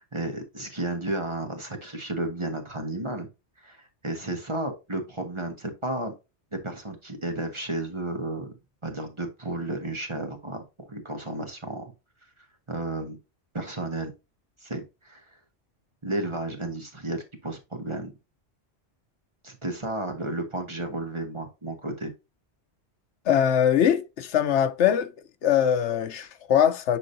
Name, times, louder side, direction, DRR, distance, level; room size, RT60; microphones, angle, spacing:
voice 1, 0.0-3.3 3.6-6.1 6.6-8.5 8.8-11.8 12.7-13.2 13.5-14.1 14.6-15.2 16.0-18.1 19.4-22.1, right 2 dB, 25° right, 1.4 m, -32 dB
voice 2, 23.3-25.1 25.4-27.0, left 9 dB, 85° left, 1.1 m, -22 dB
10.0 x 3.8 x 2.7 m
omnidirectional pair, 1.2 m